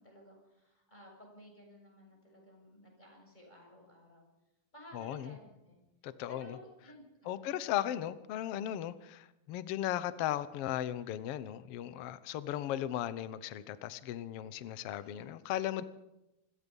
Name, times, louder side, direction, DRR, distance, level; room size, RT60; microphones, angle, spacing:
voice 1, 0.0-4.2 4.7-5.8 6.3-7.5 15.0-15.2, equal, 10° left, 0 dB, 7.1 m, -55 dB
voice 2, 4.9-5.3 6.0-6.6 7.2-15.8, left 12 dB, 75° left, 13 dB, 1.4 m, -36 dB
27.5 x 21.0 x 5.5 m, 0.95 s
omnidirectional pair, 4.0 m